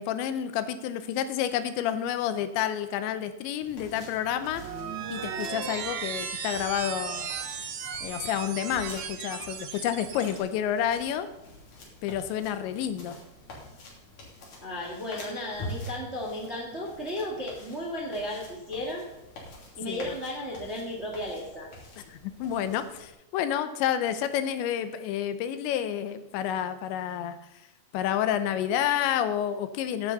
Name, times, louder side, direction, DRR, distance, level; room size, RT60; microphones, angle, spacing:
voice 1, 0.0-4.6 5.1-7.3 8.0-11.3 12.0-13.2 19.9-20.1 22.1-27.4 27.9-30.1, left 10 dB, 80° left, 11 dB, 3.1 m, -29 dB
sound 1, 3.6-23.1, left 1 dB, 50° left, 4.2 m, -46 dB
sound 2, 4.5-10.4, right 7 dB, 65° right, 2.6 m, -36 dB
voice 2, 14.6-19.0 19.8-21.7, left 1 dB, 30° right, -1 dB, 1.3 m, -34 dB
16.0 x 10.0 x 4.1 m, 0.96 s
omnidirectional pair, 5.2 m